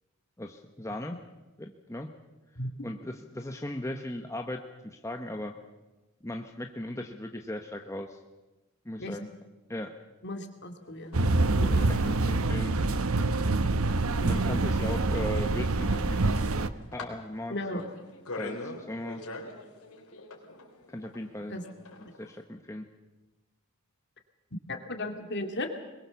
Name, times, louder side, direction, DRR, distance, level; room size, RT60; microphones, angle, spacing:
voice 1, 0.4-1.2 1.6-2.1 2.8-5.5 6.2-8.2 8.8-9.3 9.7-10.0 11.6-12.8 14.2-16.5 16.9-17.8 18.4-19.2 20.9-21.6 22.2-22.9, left 1 dB, 15° left, 3 dB, 1.0 m, -37 dB
voice 2, 10.2-11.2 11.8-11.9 14.5-14.7 17.5-17.8 21.5-21.6 24.7-25.7, left 1 dB, 50° left, 5 dB, 2.5 m, -35 dB
sound 1, 10.8-22.4, left 2 dB, 80° left, 3.9 m, -45 dB
sound 2, 11.1-16.7, right 2 dB, 70° right, 0.9 m, -26 dB
22.0 x 21.5 x 7.0 m, 1.1 s
head